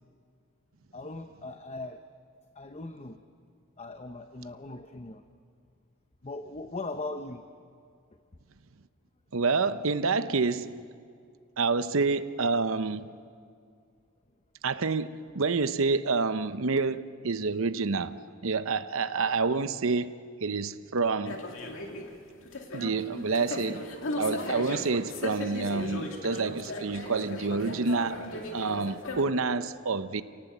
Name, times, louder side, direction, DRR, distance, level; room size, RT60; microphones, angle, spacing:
voice 1, 0.9-2.0 2.5-3.2 3.8-5.2 6.2-7.5, left 2 dB, 30° left, 0.7 m, -39 dB
voice 2, 9.3-10.8 11.6-13.1 14.6-20.1 20.4-21.4 22.7-23.9 24.2-28.3 28.5-30.2, right 4 dB, 70° right, 0.8 m, -28 dB
sound 1, 21.3-29.2, left 2 dB, 60° left, 2.5 m, -37 dB
28.0 x 18.5 x 8.1 m
head